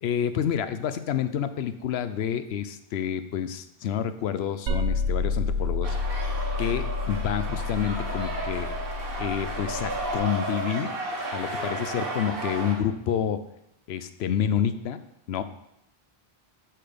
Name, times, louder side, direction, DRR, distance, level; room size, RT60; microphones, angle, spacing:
voice 1, 0.0-5.9 6.6-8.7 9.2-11.0 11.3-13.4 13.9-15.0 15.3-15.4, left 8 dB, 85° left, 11 dB, 0.9 m, -28 dB
sound 1, 4.7-10.2, left 4 dB, 85° right, 1.0 m, -29 dB
sound 2, 5.8-12.8, right 2 dB, 65° right, 1.4 m, -33 dB
6.6 x 5.9 x 5.0 m, 0.80 s
omnidirectional pair, 1.0 m